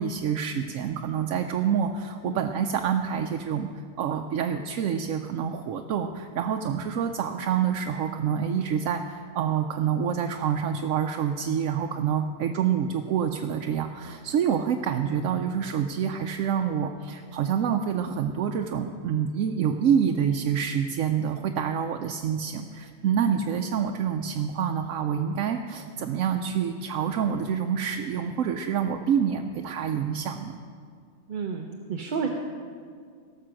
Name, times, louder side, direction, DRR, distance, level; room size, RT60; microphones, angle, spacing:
voice 1, 0.0-3.7 4.0-30.6, right 8 dB, 90° right, 4 dB, 1.0 m, -27 dB
voice 2, 31.3-32.3, right 5 dB, 45° right, 2 dB, 0.7 m, -30 dB
17.0 x 6.7 x 6.3 m, 2.2 s
omnidirectional pair, 1.3 m